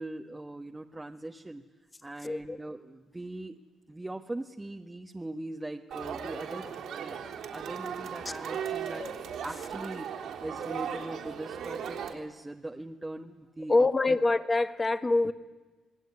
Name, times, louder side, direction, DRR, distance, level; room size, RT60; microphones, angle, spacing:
voice 1, 0.0-1.6 2.0-3.6 3.9-7.2 7.5-9.1 9.4-14.2, right 2 dB, 15° right, 2 dB, 1.3 m, -41 dB
voice 2, 2.2-2.6 8.2-8.4 13.7-15.3, left 2 dB, 25° left, 11 dB, 1.5 m, -25 dB
Crowd, 5.9-12.1, right 7 dB, 75° right, 3.6 m, -37 dB
28.0 x 19.5 x 9.7 m, 1.2 s
cardioid pair, 90°, 0 cm